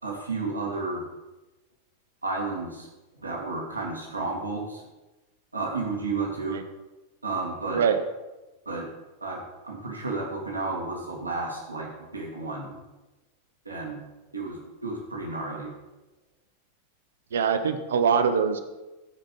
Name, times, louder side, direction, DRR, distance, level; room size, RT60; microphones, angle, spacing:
voice 1, 0.0-1.0 2.2-2.9 3.2-4.9 5.5-6.6 7.2-7.8 8.7-8.9 9.2-12.8 13.6-14.0 14.3-15.7, right 3 dB, 80° right, -1 dB, 2.2 m, -32 dB
voice 2, 17.3-18.6, right 6 dB, 65° right, 9 dB, 0.9 m, -23 dB
15.5 x 5.2 x 5.4 m, 1.1 s
figure-of-eight pair, 90°, 0 cm